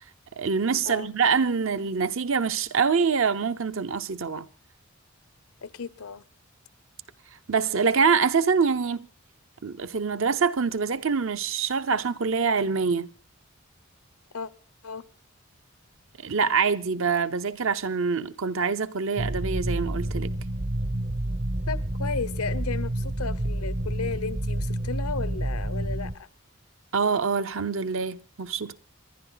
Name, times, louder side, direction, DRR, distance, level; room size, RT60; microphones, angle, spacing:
voice 1, 0.4-4.5 7.5-9.1 9.6-13.1 16.2-20.3 26.9-28.7, right 5 dB, 65° right, 0.7 m, -25 dB
voice 2, 5.6-6.2 14.3-14.5 14.8-15.0 21.7-26.3, left 5 dB, 85° left, 0.8 m, -34 dB
sound 1, 19.2-26.1, right 1 dB, 40° right, 0.8 m, -29 dB
27.5 x 11.0 x 4.0 m
head